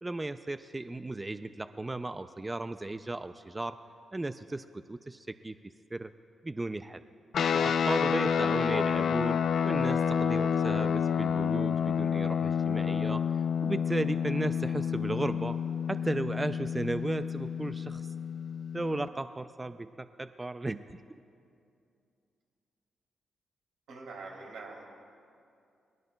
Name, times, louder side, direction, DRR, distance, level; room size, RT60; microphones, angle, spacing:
voice 1, 0.0-3.8 4.1-6.1 6.4-7.0 7.5-13.2 13.6-15.6 15.9-18.1 18.7-21.0, right 2 dB, 15° right, 11 dB, 0.3 m, -35 dB
sound 1, 7.3-19.1, left 7 dB, 65° left, 0.5 m, -29 dB
voice 2, 23.9-24.9, right 3 dB, 85° right, -1 dB, 2.9 m, -44 dB
22.5 x 19.5 x 2.2 m, 2.5 s
cardioid pair, 125°, 0 cm